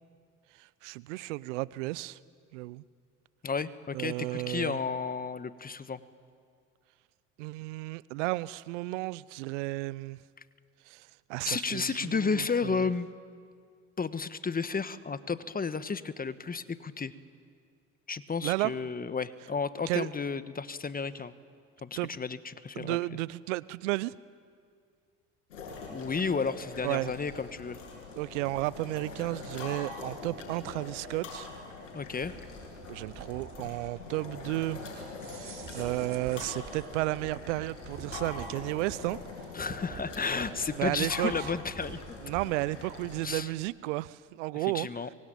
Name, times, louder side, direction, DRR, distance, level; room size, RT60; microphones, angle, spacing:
voice 1, 0.6-2.2 2.5-2.8 3.9-4.8 7.4-10.2 10.9-12.8 18.4-18.7 19.9-20.1 22.0-22.1 22.8-24.1 26.8-27.1 28.2-31.5 32.9-34.8 35.3-39.2 40.8-41.3 42.2-44.9, right 20 dB, 75° right, 21 dB, 0.7 m, -33 dB
voice 2, 3.4-6.0 11.4-13.1 14.0-17.1 18.1-21.3 21.8-23.0 25.9-27.8 31.9-32.3 39.5-42.2 43.2-43.5 44.5-45.1, left 5 dB, 25° left, 13 dB, 1.3 m, -32 dB
sound 1, 25.5-43.2, left 3 dB, 85° left, 7.8 m, -43 dB
sound 2, 32.2-42.5, right 5 dB, 35° right, 4.9 m, -48 dB
25.5 x 23.5 x 9.2 m, 2.2 s
hypercardioid pair, 65°, 37 cm